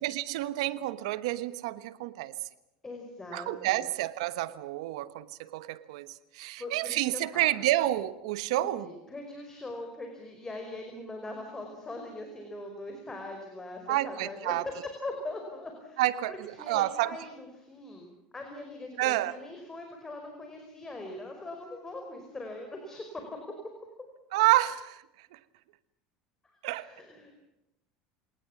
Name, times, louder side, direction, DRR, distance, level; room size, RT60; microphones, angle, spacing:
voice 1, 0.0-2.3 3.3-8.9 13.9-14.6 16.0-17.2 19.0-19.4 24.3-25.0 25.3-25.4 26.6-26.9, right 16 dB, 85° right, 1.2 m, -29 dB
voice 2, 2.8-3.9 6.6-7.6 8.5-14.5 14.8-16.0 16.3-18.1 18.3-23.2 26.4-27.4, left 2 dB, 15° left, 5.1 m, -41 dB
26.5 x 19.0 x 7.3 m
supercardioid pair, 115°, 3 cm